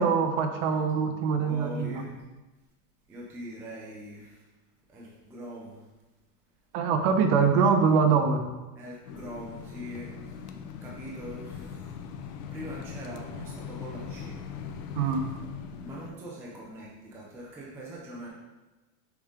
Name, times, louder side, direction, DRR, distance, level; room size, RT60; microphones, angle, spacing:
voice 1, 0.0-2.1 6.7-8.4 15.0-15.3, right 5 dB, 40° right, 6 dB, 0.8 m, -24 dB
voice 2, 1.4-2.1 3.1-4.4 4.9-5.8 8.8-10.5 10.8-11.9 12.5-14.4 15.8-18.3, equal, 5° right, -4 dB, 0.4 m, -42 dB
sound 1, 9.0-16.1, left 6 dB, 75° left, 0.8 m, -40 dB
6.2 x 4.9 x 3.7 m, 1.1 s
supercardioid pair, 155°, 47 cm